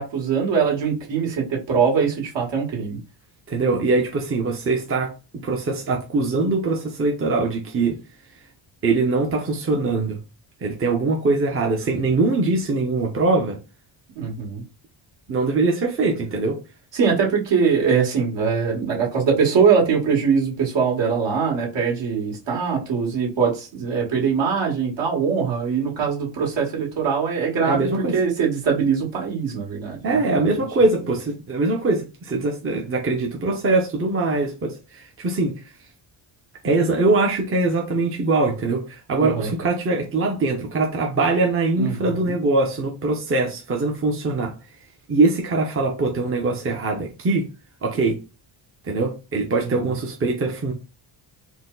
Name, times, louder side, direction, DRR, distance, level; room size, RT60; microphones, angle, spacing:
voice 1, 0.0-3.0 14.2-14.6 16.9-30.4 39.2-39.5 41.8-42.4 49.6-49.7, right 6 dB, 60° right, 2.0 m, -22 dB
voice 2, 3.5-8.0 8.8-10.2 10.6-13.6 15.3-16.6 27.6-28.2 30.0-35.6 36.6-44.5 45.1-47.5 47.8-48.2 48.8-50.7, right 3 dB, 25° right, 0.8 m, -22 dB
4.4 x 2.2 x 3.9 m
cardioid pair, 135°, 49 cm